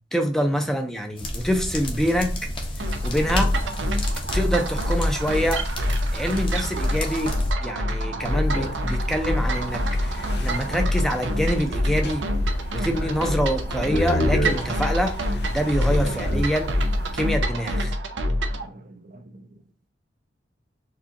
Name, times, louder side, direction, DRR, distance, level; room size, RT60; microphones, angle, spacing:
voice 1, 0.1-2.4 2.8-3.5 4.3-5.7 6.1-7.4 7.6-12.3 12.7-16.7 17.1-17.9, equal, ahead, 0.5 m, -26 dB
sound 1, 1.2-7.5, left 1 dB, 30° left, 0.9 m, -31 dB
sound 2, 2.8-18.6, equal, 85° right, 0.6 m, -26 dB
voice 2, 8.0-8.4 10.6-10.8 16.1-16.2 17.9-18.0 18.5-19.4, right 2 dB, 45° right, 0.5 m, -45 dB
sound 3, 8.2-17.3, equal, 65° left, 0.7 m, -31 dB
4.6 x 2.4 x 2.8 m
head